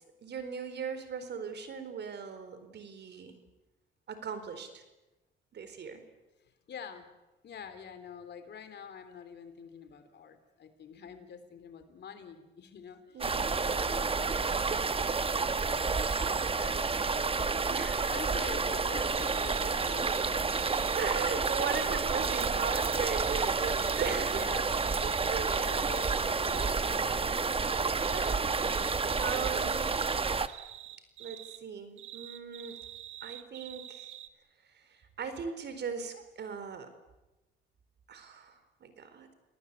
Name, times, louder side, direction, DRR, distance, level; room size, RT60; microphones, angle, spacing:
voice 1, 0.2-3.4 4.1-4.8 5.5-6.0 13.1-13.5 17.7-18.0 21.0-24.4 25.0-25.7 28.1-28.4 29.2-30.0 31.2-32.8 33.2-34.1 35.2-36.9 38.1-39.3, right 6 dB, 60° right, 10 dB, 4.3 m, -38 dB
voice 2, 6.4-7.1 7.4-13.3 13.6-14.7 15.8-17.6 18.1-20.6 24.3-24.8 25.5-28.0 28.6-28.9, left 6 dB, 60° left, 9 dB, 3.6 m, -47 dB
sound 1, 13.2-30.5, right 4 dB, 30° right, 1.3 m, -30 dB
sound 2, 19.1-21.0 21.5-26.7 27.6-31.6 32.0-34.3, right 13 dB, 85° right, 1.4 m, -45 dB
29.5 x 19.0 x 8.3 m, 1.0 s
cardioid pair, 90°, 20 cm